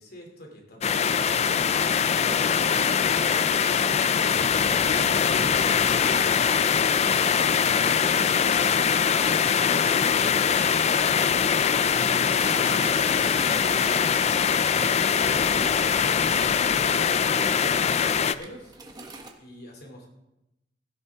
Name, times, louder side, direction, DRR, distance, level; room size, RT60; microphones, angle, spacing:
voice 1, 0.0-4.9 15.5-18.8 19.4-20.1, equal, 60° left, 1 dB, 2.8 m, -46 dB
sound 1, 0.8-18.3, left 7 dB, 35° left, 0.4 m, -22 dB
voice 2, 1.9-2.0, right 1 dB, 55° right, -4 dB, 4.7 m, -49 dB
sound 2, 4.4-8.6 15.2-19.0, equal, 80° left, 3.8 m, -46 dB
sound 3, 12.4-15.8 16.2-16.4 16.9-17.4 17.7-19.3, right 2 dB, 20° right, 1.3 m, -41 dB
16.5 x 11.0 x 3.5 m, 0.89 s
head